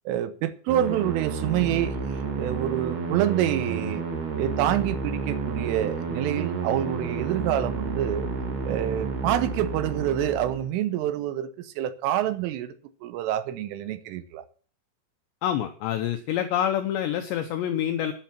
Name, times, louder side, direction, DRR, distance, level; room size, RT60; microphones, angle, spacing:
voice 1, 0.1-4.0 4.4-8.3 8.6-12.7 13.0-14.4, right 12 dB, 85° right, 3.4 m, -27 dB
sound 1, 0.7-10.7, right 4 dB, 55° right, 4.2 m, -31 dB
voice 2, 15.4-18.1, left 10 dB, 75° left, 2.6 m, -27 dB
12.0 x 10.5 x 5.9 m
omnidirectional pair, 5.9 m